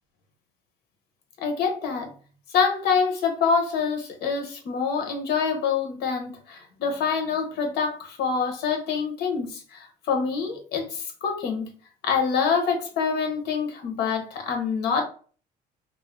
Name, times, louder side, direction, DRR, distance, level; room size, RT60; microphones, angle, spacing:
voice 1, 1.4-2.1 2.5-11.7 12.0-15.0, left 5 dB, 75° left, 4 dB, 0.9 m, -26 dB
2.6 x 2.0 x 3.6 m, 0.41 s
cardioid pair, 110°, 17 cm